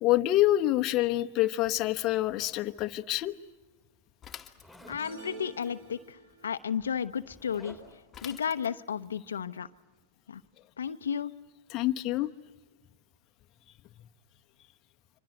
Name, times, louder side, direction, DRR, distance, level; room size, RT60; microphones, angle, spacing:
voice 1, 0.0-3.4 11.7-12.3, left 15 dB, 40° left, 8 dB, 1.1 m, -26 dB
Zipper (clothing), 1.6-3.3 4.6-5.1 6.2-6.3 6.6-8.1, left 1 dB, 5° right, 4.7 m, -54 dB
Bicycle / Mechanisms, 4.2-5.2 8.1-9.1, left 9 dB, 20° left, 1.7 m, -47 dB
voice 2, 4.9-7.8 8.2-9.7 10.3-10.4 10.8-11.3, left 7 dB, 90° left, 9 dB, 0.9 m, -33 dB
sound 1, 5.0-6.5, right 4 dB, 70° right, 6.4 m, -47 dB
27.0 x 25.0 x 7.9 m, 1.2 s
hypercardioid pair, 120°, 0 cm